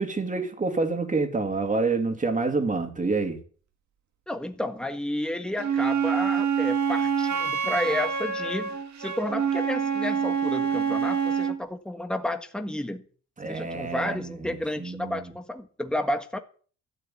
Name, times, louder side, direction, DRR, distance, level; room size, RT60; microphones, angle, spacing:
voice 1, 0.0-3.4 13.4-15.2, right 3 dB, 25° right, 2.6 m, -28 dB
voice 2, 4.3-8.7 9.0-13.0 13.5-16.4, left 1 dB, 5° left, 1.6 m, -31 dB
Wind instrument woodwind instrument, 5.6-11.6, right 6 dB, 65° right, 2.2 m, -26 dB
13.0 x 6.5 x 9.3 m
cardioid pair, 90°, 30 cm